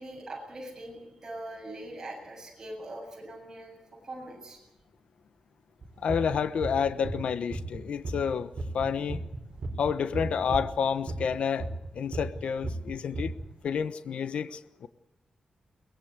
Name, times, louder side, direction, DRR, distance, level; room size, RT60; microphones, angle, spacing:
voice 1, 0.0-4.6, right 1 dB, 25° right, 0 dB, 7.4 m, -42 dB
sound 1, 5.8-7.8 8.0-11.9 12.1-13.5, right 2 dB, 45° right, 4.3 m, -35 dB
voice 2, 6.0-9.2 9.8-11.7 11.9-13.3 13.6-14.9, left 7 dB, 65° left, 12 dB, 1.1 m, -29 dB
23.0 x 20.5 x 8.3 m, 0.91 s
wide cardioid pair, 180°, 2 cm